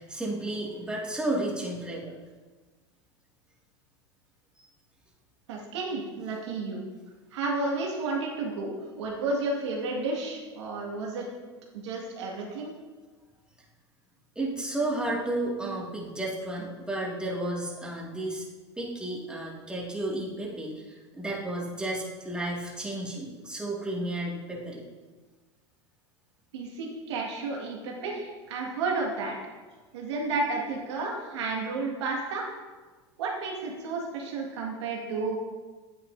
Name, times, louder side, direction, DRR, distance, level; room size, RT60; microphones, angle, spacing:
voice 1, 0.0-2.1 14.4-18.4 18.8-24.8, right 1 dB, 5° right, -4 dB, 2.1 m, -32 dB
voice 2, 5.5-6.8 7.3-11.3 11.7-12.7 26.5-29.4 29.9-32.4 33.2-35.3, right 3 dB, 75° right, -2 dB, 1.9 m, -32 dB
9.5 x 8.2 x 2.7 m, 1.3 s
hypercardioid pair, 100°, 14 cm